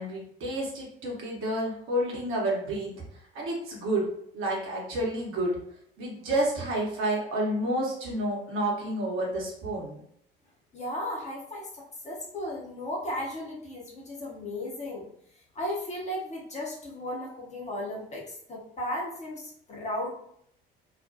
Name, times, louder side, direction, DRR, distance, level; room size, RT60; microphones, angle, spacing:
voice 1, 0.0-3.0 3.3-4.1 4.3-5.6 6.0-10.0, right 1 dB, 45° right, -3 dB, 1.0 m, -30 dB
voice 2, 10.7-15.1 15.5-20.1, left 1 dB, 25° left, -4 dB, 0.8 m, -35 dB
2.4 x 2.1 x 2.6 m, 0.69 s
figure-of-eight pair, 60°, 29 cm